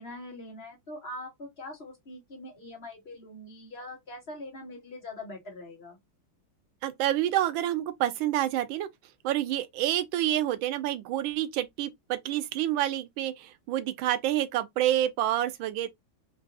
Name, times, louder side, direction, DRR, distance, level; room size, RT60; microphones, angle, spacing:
voice 1, 0.0-6.0, left 1 dB, 40° left, 1.0 m, -43 dB
voice 2, 6.8-8.9 9.2-15.9, right 13 dB, 85° right, 1.4 m, -28 dB
3.8 x 2.4 x 2.5 m
omnidirectional pair, 2.1 m